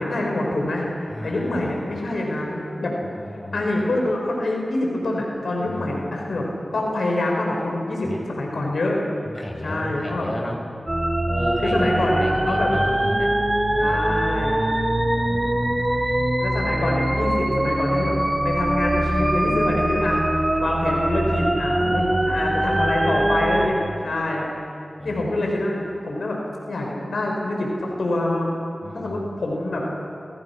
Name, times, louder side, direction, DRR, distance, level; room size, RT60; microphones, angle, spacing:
voice 1, 0.0-2.9 3.5-6.5 6.7-9.0 9.6-10.3 11.6-12.7 13.8-14.6 16.4-18.2 18.4-23.8 24.0-24.5 25.0-26.4 26.7-28.5 28.9-29.8, left 1 dB, 85° left, 0 dB, 5.5 m, -25 dB
voice 2, 1.1-1.8 3.0-3.8 5.7-6.1 8.0-8.2 9.2-10.6 11.3-11.9 12.2-13.4 13.7-14.2 15.0-16.2 21.8-22.6 25.0-25.3 28.8-29.3, left 1 dB, 30° left, 1 dB, 6.5 m, -34 dB
sound 1, 10.9-23.7, right 1 dB, 25° right, 4.7 m, -22 dB
29.5 x 26.0 x 6.1 m, 2.5 s
cardioid pair, 40°, 0 cm